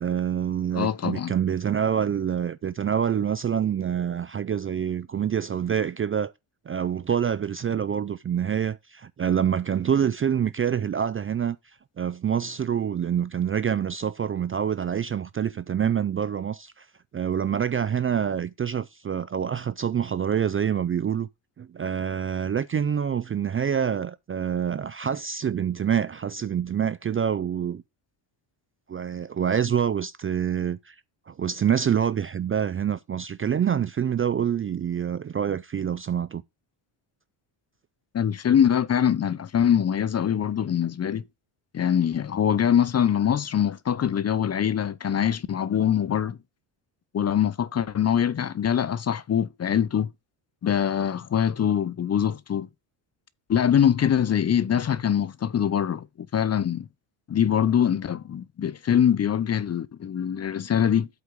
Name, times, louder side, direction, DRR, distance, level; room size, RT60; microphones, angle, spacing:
voice 1, 0.0-6.3 6.7-11.6 12.0-16.9 17.1-21.3 21.6-27.8 28.9-30.9 31.3-36.4, right 8 dB, 30° right, 0.4 m, -26 dB
voice 2, 0.7-1.3 38.1-41.2 41.7-46.4 47.1-50.1 50.6-52.7 53.5-56.9 57.3-61.1, left 9 dB, 35° left, 0.5 m, -23 dB
8.2 x 4.7 x 5.2 m
cardioid pair, 110°, 49 cm